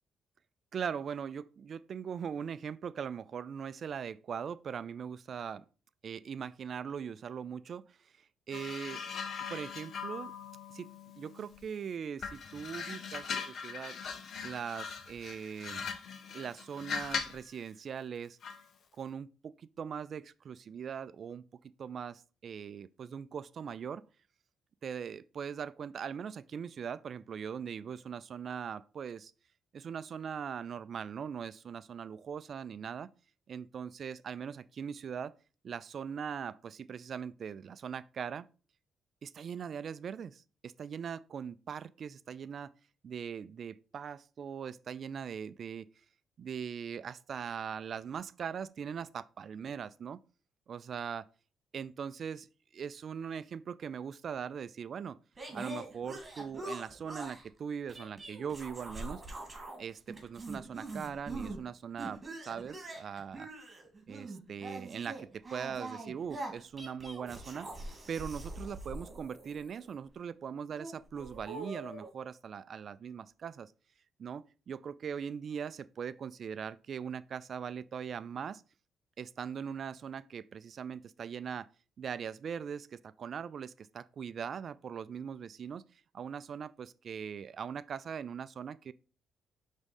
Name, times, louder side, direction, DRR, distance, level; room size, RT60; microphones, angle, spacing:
voice 1, 0.7-5.6 6.0-9.0 9.5-10.3 10.7-10.9 11.2-14.0 14.4-15.8 16.3-18.4 19.0-21.4 21.8-24.0 24.8-29.3 29.7-33.1 33.5-35.3 35.6-38.5 39.2-42.7 43.0-45.9 46.4-50.2 50.7-51.2 51.7-52.5 52.7-55.2 55.5-59.2 59.8-63.5 64.1-67.7 68.1-73.7 74.2-78.6 79.2-81.7 82.0-85.9 86.1-88.9, right 7 dB, 55° right, 0.3 m, -40 dB
sound 1, 8.5-11.8 12.2-17.5 18.4-18.7, left 6 dB, 60° left, 0.9 m, -40 dB
sound 2, 55.4-57.5 57.9-59.8 60.1-61.6 62.0-69.9 70.7-72.1, right 2 dB, 25° right, 2.3 m, -43 dB
5.4 x 3.6 x 5.2 m
cardioid pair, 90°, 0 cm